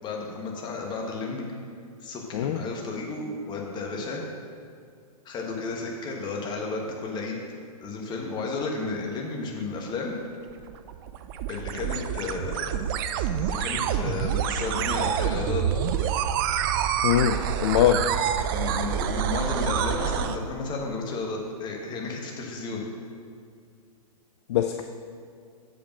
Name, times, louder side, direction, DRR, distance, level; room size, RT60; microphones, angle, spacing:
voice 1, 0.0-1.5 2.0-4.2 5.2-7.4 7.8-10.2 11.5-12.8 13.4-15.6 18.5-22.8, left 3 dB, 20° left, 0 dB, 1.2 m, -32 dB
sound 1, 10.5-20.4, right 9 dB, 35° right, 0.4 m, -27 dB
voice 2, 17.0-18.1 24.5-24.8, left 10 dB, 45° left, 7 dB, 0.4 m, -22 dB
7.0 x 5.1 x 6.1 m, 2.3 s
hypercardioid pair, 120°, 20 cm